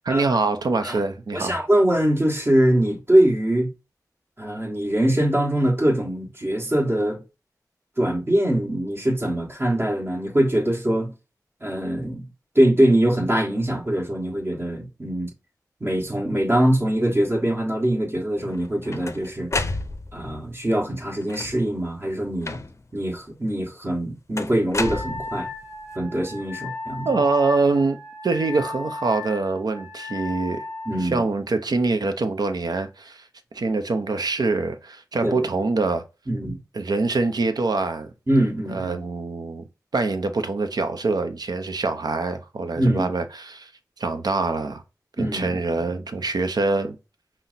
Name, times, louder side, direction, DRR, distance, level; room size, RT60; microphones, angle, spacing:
voice 1, 0.0-1.6 27.0-30.6 31.0-33.3 33.5-36.0 36.7-38.1 38.7-39.6 39.9-43.7 44.0-44.8 45.2-47.0, right 3 dB, 80° right, 0.6 m, -24 dB
voice 2, 1.3-3.7 4.4-7.2 8.0-11.1 11.6-12.3 12.5-15.3 15.8-19.5 20.1-22.6 22.9-25.5 25.9-27.2 30.8-31.2 35.2-35.5 36.3-36.6 38.3-39.0 42.8-43.1 45.2-45.8, right 1 dB, 35° right, 1.5 m, -22 dB
sound 1, 18.5-20.3 21.2-21.7 22.4-23.0 24.4-25.6, left 3 dB, 45° left, 0.5 m, -31 dB
Wind instrument woodwind instrument, 24.7-31.1, left 3 dB, 5° right, 1.5 m, -35 dB
5.7 x 2.1 x 2.6 m
wide cardioid pair, 65°, 7 cm